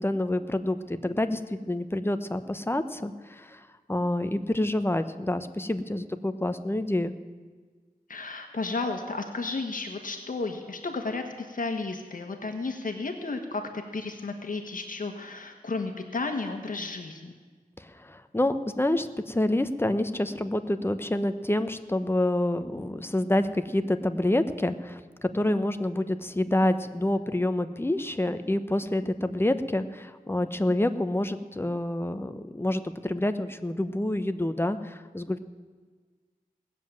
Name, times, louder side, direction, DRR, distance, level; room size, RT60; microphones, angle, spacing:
voice 1, 0.0-7.1 17.8-35.5, left 1 dB, 15° left, 10 dB, 0.9 m, -28 dB
voice 2, 8.1-17.3, left 3 dB, 65° left, 5 dB, 1.4 m, -33 dB
18.5 x 7.6 x 9.0 m, 1.4 s
wide cardioid pair, 85°, 15 cm